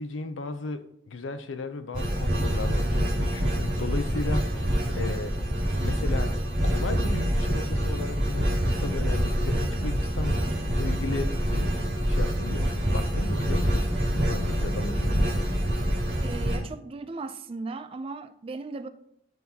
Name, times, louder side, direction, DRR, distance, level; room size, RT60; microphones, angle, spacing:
voice 1, 0.0-5.3 5.8-6.3 6.6-10.4 10.7-11.7 12.1-13.8 14.1-15.3, left 3 dB, 90° left, 0.5 m, -35 dB
sound 1, 1.9-16.6, equal, 65° right, 2.5 m, -26 dB
voice 2, 16.2-18.9, right 3 dB, 30° right, 0.3 m, -37 dB
9.2 x 4.0 x 2.8 m
head